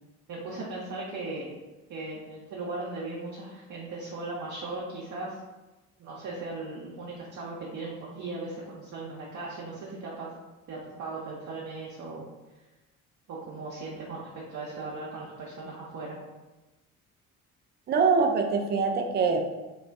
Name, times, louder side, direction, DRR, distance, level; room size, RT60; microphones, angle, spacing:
voice 1, 0.3-1.5 1.9-5.4 6.0-10.3 10.7-12.2 13.3-16.2, right 3 dB, 45° right, -5 dB, 0.7 m, -38 dB
voice 2, 17.9-19.5, right 4 dB, 25° right, 4 dB, 0.4 m, -24 dB
2.3 x 2.2 x 3.4 m, 1.1 s
figure-of-eight pair, 50°, 42 cm